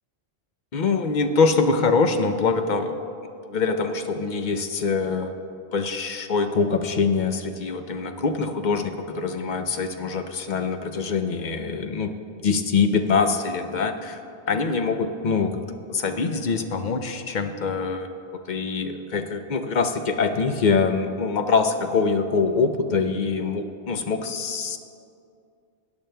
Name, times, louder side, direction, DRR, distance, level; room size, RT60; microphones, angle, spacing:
voice 1, 0.7-3.0 3.4-5.3 5.7-12.1 12.4-14.2 14.5-24.8, left 4 dB, 55° left, 7 dB, 0.6 m, -24 dB
16.5 x 10.5 x 2.2 m, 2.4 s
omnidirectional pair, 1.1 m